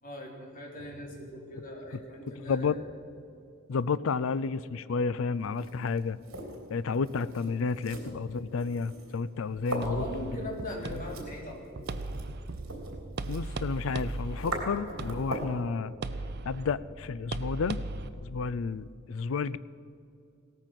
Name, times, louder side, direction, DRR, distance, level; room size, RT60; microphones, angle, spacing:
voice 1, 0.0-2.8 9.8-11.9, left 1 dB, 40° left, -1 dB, 3.6 m, -40 dB
voice 2, 2.5-2.8 3.7-6.2 6.7-10.0 10.9-11.0 13.3-15.9 16.5-17.8 18.2-19.6, left 5 dB, 70° left, 16 dB, 0.4 m, -31 dB
sound 1, 5.4-15.6, right 2 dB, 70° right, 3.2 m, -41 dB
sound 2, 9.8-18.1, right 2 dB, 50° right, 0.6 m, -38 dB
17.5 x 14.0 x 5.9 m, 2.6 s
head